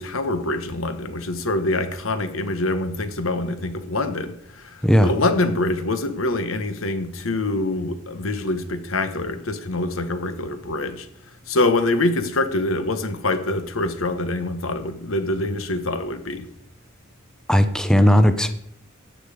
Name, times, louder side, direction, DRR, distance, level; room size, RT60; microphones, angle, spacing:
voice 1, 0.0-4.3 4.6-11.1 11.5-16.5, left 2 dB, 90° left, 10 dB, 1.2 m, -25 dB
voice 2, 17.5-18.5, equal, 5° left, 9 dB, 0.7 m, -16 dB
14.0 x 8.8 x 5.0 m, 0.72 s
head